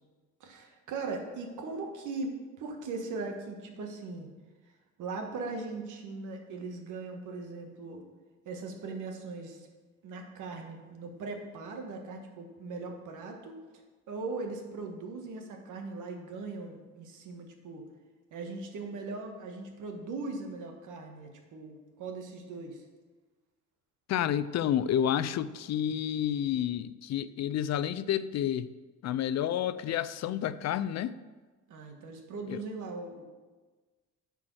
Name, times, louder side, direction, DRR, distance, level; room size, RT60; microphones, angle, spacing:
voice 1, 0.4-4.3 5.0-8.0 8.4-9.7 10.0-13.6 14.1-17.8 18.3-22.8 31.7-33.2, right 3 dB, 85° right, 1.5 m, -39 dB
voice 2, 24.1-28.7 29.0-31.1 32.5-32.6, left 10 dB, 60° left, 0.5 m, -30 dB
9.8 x 4.6 x 6.2 m
cardioid pair, 90°, 30 cm